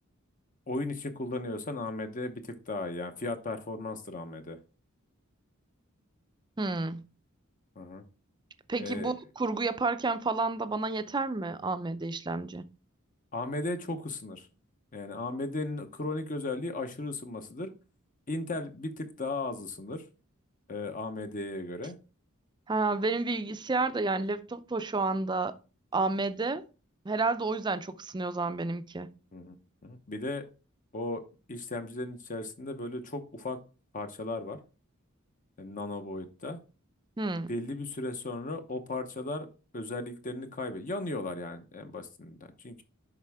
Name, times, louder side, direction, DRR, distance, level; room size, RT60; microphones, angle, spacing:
voice 1, 0.7-4.6 7.8-8.0 8.8-9.1 13.3-14.5 14.9-17.7 18.3-20.0 20.7-22.0 29.3-29.5 29.8-30.4 30.9-31.2 31.5-33.6 33.9-34.6 35.6-36.6 37.5-39.5 39.7-42.8, left 2 dB, 40° left, 0.8 m, -36 dB
voice 2, 6.6-7.0 8.7-12.7 22.7-25.5 25.9-26.6 27.1-29.1 37.2-37.5, right 3 dB, 20° right, 0.5 m, -30 dB
11.0 x 4.3 x 3.5 m
head